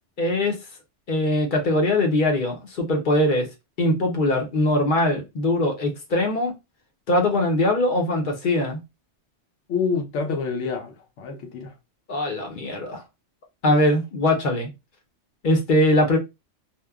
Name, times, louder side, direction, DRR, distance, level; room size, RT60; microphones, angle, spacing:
voice 1, 0.2-0.6 1.1-3.5 3.8-6.5 7.1-8.8 12.1-13.0 13.6-14.7 15.4-16.2, left 1 dB, 50° left, 0.7 m, -21 dB
voice 2, 9.7-11.7 13.7-13.8, left 5 dB, 80° left, 1.0 m, -27 dB
2.8 x 2.1 x 2.3 m
omnidirectional pair, 1.2 m